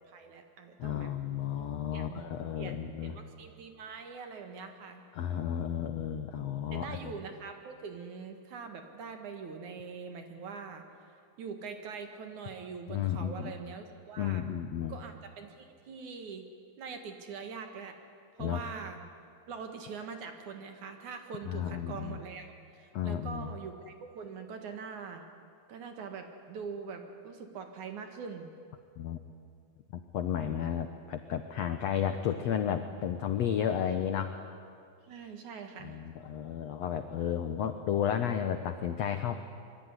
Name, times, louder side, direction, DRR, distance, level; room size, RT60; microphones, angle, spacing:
voice 1, 0.0-1.1 1.9-5.0 6.7-14.4 14.9-16.5 16.8-18.0 18.4-19.0 19.5-25.2 25.7-28.5 35.0-35.9, right 5 dB, 60° right, 6 dB, 2.9 m, -43 dB
voice 2, 0.8-3.2 5.1-7.1 12.9-13.5 14.2-15.0 18.4-18.6 21.5-22.2 22.9-23.5 29.0-29.2 29.9-34.3 35.8-39.4, left 9 dB, 70° left, 8 dB, 1.6 m, -33 dB
25.0 x 23.0 x 9.8 m, 2.4 s
omnidirectional pair, 4.4 m